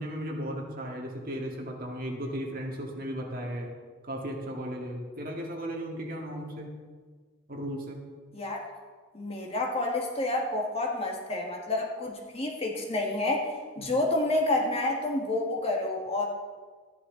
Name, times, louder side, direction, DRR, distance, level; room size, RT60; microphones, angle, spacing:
voice 1, 0.0-3.7 4.1-6.7 7.5-8.0 13.8-13.9, equal, 45° right, 0 dB, 1.9 m, -35 dB
voice 2, 9.1-16.2, left 2 dB, 30° left, 0 dB, 1.6 m, -29 dB
13.0 x 10.5 x 3.9 m, 1.5 s
head